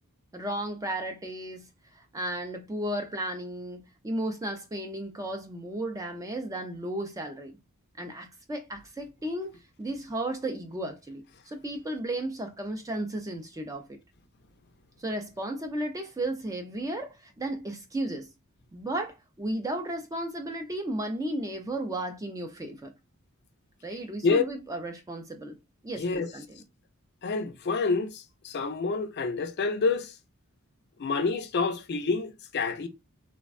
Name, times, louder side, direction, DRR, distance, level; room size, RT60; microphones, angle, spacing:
voice 1, 0.3-1.7 1.9-7.6 8.0-14.0 15.0-18.3 18.7-22.9 23.8-25.6 25.8-26.6, right 1 dB, 15° right, 0.4 m, -34 dB
voice 2, 26.0-26.3 27.2-30.1 31.0-32.9, left 4 dB, 50° left, 0.4 m, -28 dB
3.3 x 2.1 x 2.3 m
head